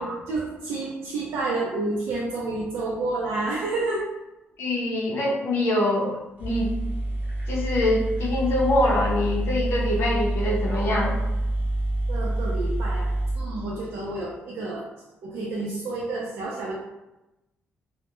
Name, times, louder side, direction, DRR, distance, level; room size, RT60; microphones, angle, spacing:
voice 1, 0.0-4.0 12.1-14.8 15.2-16.8, right 2 dB, 75° right, -5 dB, 0.5 m, -30 dB
voice 2, 4.6-6.7 7.5-11.2, left 1 dB, 60° left, -3 dB, 0.5 m, -24 dB
sound 1, 6.1-6.2 6.4-14.2, right 1 dB, 40° right, 0.7 m, -27 dB
2.1 x 2.0 x 2.9 m, 0.98 s
cardioid pair, 165°, 5 cm